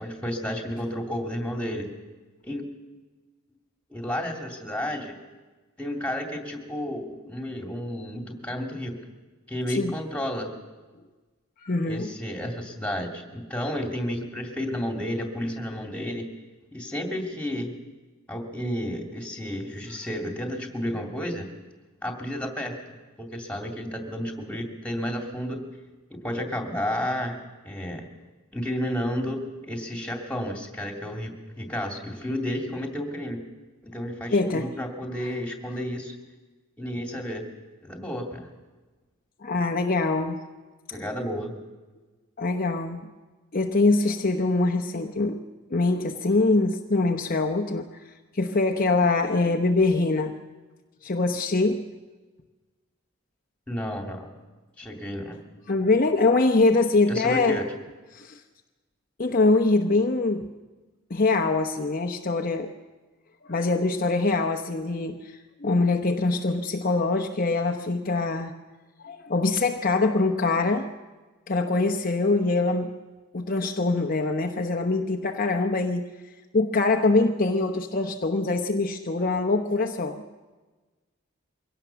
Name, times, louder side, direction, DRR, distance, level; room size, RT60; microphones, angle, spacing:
voice 1, 0.0-1.9 2.4-2.6 3.9-5.2 5.8-9.0 9.5-10.5 11.8-16.2 16.7-17.7 18.3-21.5 22.0-22.8 23.2-25.7 26.1-27.4 27.6-28.0 28.5-33.4 33.8-36.2 36.8-37.5 37.8-38.5 40.9-41.5 53.7-54.3 54.8-55.4 57.1-57.7, equal, 5° left, 2 dB, 2.6 m, -31 dB
voice 2, 11.6-12.1 34.3-34.7 35.2-35.3 39.4-40.4 42.4-43.1 43.5-45.4 45.7-47.9 48.3-50.3 51.0-51.8 55.7-57.6 58.1-58.4 59.2-60.4 61.1-62.7 63.4-68.5 69.0-70.9 71.5-72.9 73.3-76.1 76.5-80.4, left 3 dB, 40° left, 4 dB, 0.9 m, -23 dB
23.5 x 17.5 x 6.9 m, 1.3 s
head